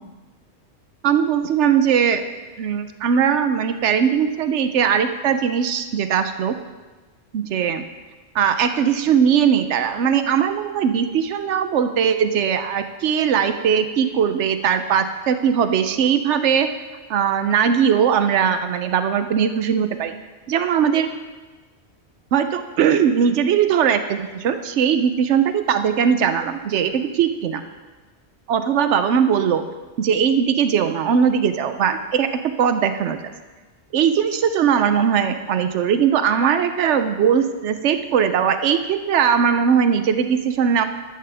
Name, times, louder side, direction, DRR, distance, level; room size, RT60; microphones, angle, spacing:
voice 1, 1.0-2.2 2.6-6.5 7.3-7.8 8.3-16.7 17.1-20.1 20.5-21.1 22.3-27.6 28.5-29.6 30.0-32.3 32.6-33.2 33.9-40.8, right 7 dB, 90° right, 9 dB, 1.0 m, -19 dB
13.5 x 12.0 x 3.4 m, 1.3 s
omnidirectional pair, 1.2 m